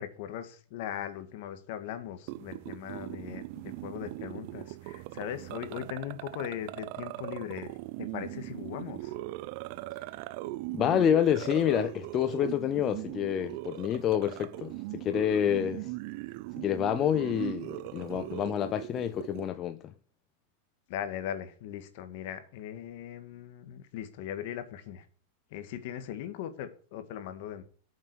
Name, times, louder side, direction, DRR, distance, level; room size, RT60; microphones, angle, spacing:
voice 1, 0.0-9.1 20.9-25.1 25.5-27.6, left 10 dB, 45° left, 2.0 m, -39 dB
sound 1, 2.3-19.5, right 19 dB, 40° right, 0.5 m, -39 dB
voice 2, 10.7-15.9 16.6-19.9, left 10 dB, 20° left, 0.6 m, -28 dB
13.0 x 7.4 x 7.1 m
supercardioid pair, 175°, 0 cm